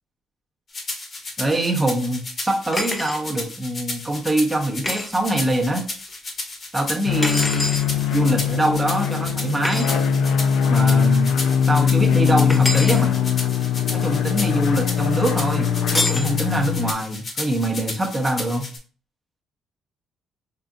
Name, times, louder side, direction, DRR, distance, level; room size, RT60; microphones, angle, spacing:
sound 1, 0.7-18.8, left 2 dB, 40° left, 1.1 m, -33 dB
voice 1, 1.4-5.9 6.7-7.7 8.1-9.9 10.7-11.4 11.7-13.1 13.9-18.7, right 1 dB, 15° right, 0 dB, 0.9 m, -24 dB
sound 2, 2.7-3.2 4.8-5.1 7.2-7.9 9.6-9.9 12.5-13.0 15.9-16.3, left 1 dB, 15° left, 0.7 m, -25 dB
sound 3, 7.1-16.9, left 7 dB, 80° left, 0.4 m, -21 dB
4.8 x 2.6 x 2.4 m, 0.43 s
cardioid pair, 105°, 0 cm